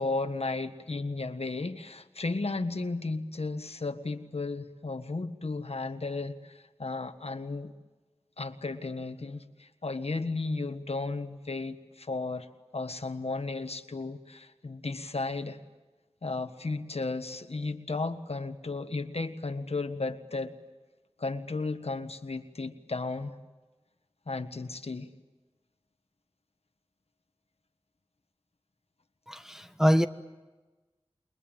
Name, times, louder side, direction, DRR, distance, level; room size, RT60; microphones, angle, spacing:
voice 1, 0.0-7.7 8.4-12.5 12.7-15.6 16.2-20.5 21.2-23.3 24.3-25.1, left 3 dB, 70° left, 8 dB, 1.5 m, -34 dB
voice 2, 29.3-30.1, equal, 5° right, 8 dB, 1.1 m, -24 dB
29.0 x 22.0 x 9.0 m, 1.2 s
wide cardioid pair, 45°, 11 cm